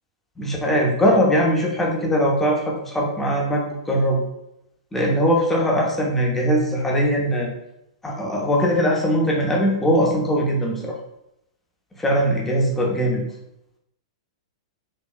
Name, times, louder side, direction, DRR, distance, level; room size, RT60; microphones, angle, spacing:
voice 1, 0.4-3.6 3.9-4.2 4.9-7.5 8.0-11.0 12.0-13.2, equal, 10° left, -2 dB, 0.9 m, -20 dB
4.2 x 2.9 x 2.3 m, 0.81 s
figure-of-eight pair, 105°, 3 cm